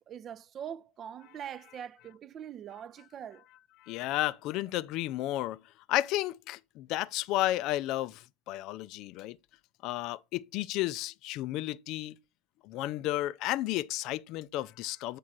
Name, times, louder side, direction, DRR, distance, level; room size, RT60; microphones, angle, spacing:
voice 1, 0.0-3.4, right 9 dB, 30° right, 0.5 m, -43 dB
voice 2, 3.8-5.6 5.9-9.4 9.8-12.2 12.6-15.2, left 15 dB, 45° left, 0.4 m, -32 dB
8.4 x 3.7 x 5.9 m
figure-of-eight pair, 80°, 0 cm